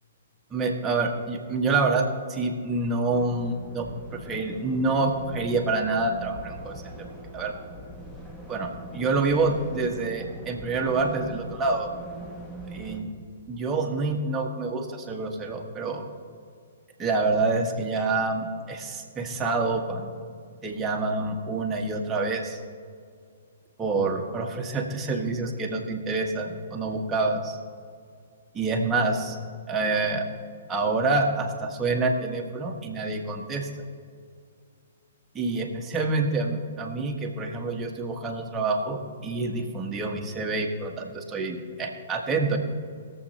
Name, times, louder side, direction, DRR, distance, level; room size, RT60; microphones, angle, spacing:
voice 1, 0.5-7.1 7.3-7.5 8.5-12.0 12.7-13.1 13.5-16.1 17.0-20.1 20.6-22.6 23.8-27.6 28.5-29.4 29.7-30.2 30.7-33.7 35.3-42.6, right 3 dB, 15° right, 0 dB, 1.5 m, -27 dB
sound 1, 3.1-13.0, right 1 dB, 10° left, 1.4 m, -42 dB
22.0 x 7.6 x 2.9 m, 2.2 s
figure-of-eight pair, 120°, 0 cm